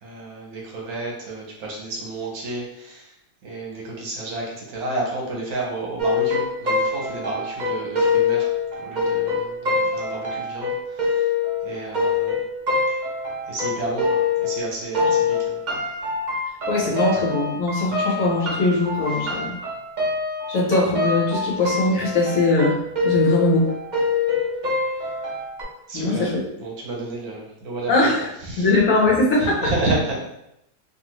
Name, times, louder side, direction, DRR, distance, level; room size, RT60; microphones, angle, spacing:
voice 1, 0.0-3.1 3.4-8.5 8.8-11.2 11.6-12.4 13.5-15.6 25.9-26.3 26.6-28.1 28.5-28.7 29.4-30.2, right 2 dB, 70° right, -3 dB, 1.3 m, -31 dB
sound 1, 6.0-14.7 14.9-25.6, left 4 dB, 55° right, 0.5 m, -24 dB
voice 2, 16.7-19.6 20.5-22.8 23.0-23.7 25.9-26.5 27.9-28.3 28.6-29.7, left 2 dB, 60° left, -5 dB, 1.2 m, -21 dB
2.9 x 2.5 x 3.0 m, 0.82 s
omnidirectional pair, 1.7 m